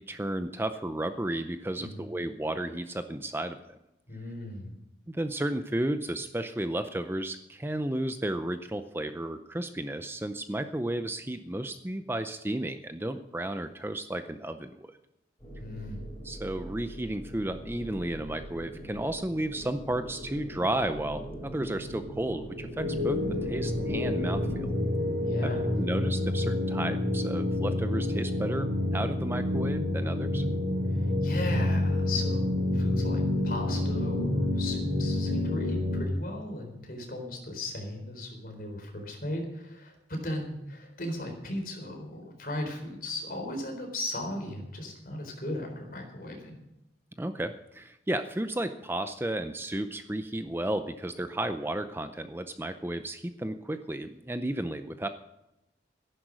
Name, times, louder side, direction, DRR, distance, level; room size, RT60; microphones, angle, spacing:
voice 1, 0.0-3.8 5.1-14.9 16.2-24.7 25.4-25.5 25.8-30.4 47.2-55.1, right 1 dB, 10° right, 9 dB, 0.5 m, -33 dB
voice 2, 1.8-2.1 4.1-4.7 15.6-16.0 25.2-25.7 30.9-46.6, left 1 dB, 50° left, 3 dB, 4.0 m, -37 dB
sound 1, 15.4-24.7, right 1 dB, 20° left, 5.2 m, -41 dB
sound 2, 22.8-36.0, left 1 dB, 45° right, 5.4 m, -28 dB
14.5 x 11.0 x 6.4 m, 0.89 s
head